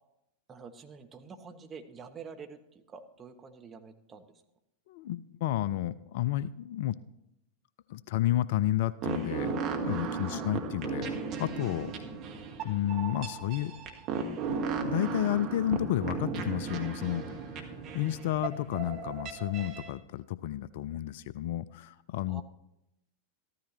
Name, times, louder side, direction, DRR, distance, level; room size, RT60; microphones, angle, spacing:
voice 1, 0.5-4.3 10.2-10.5 22.3-22.4, right 5 dB, 20° right, 5 dB, 1.1 m, -47 dB
voice 2, 4.9-7.0 7.9-11.9 12.6-13.7 14.8-17.2 17.5-22.4, left 13 dB, 50° left, 18 dB, 0.3 m, -31 dB
sound 1, 9.0-19.9, right 5 dB, 40° right, 1.5 m, -36 dB
14.0 x 12.5 x 3.2 m, 0.84 s
figure-of-eight pair, 90°, 0 cm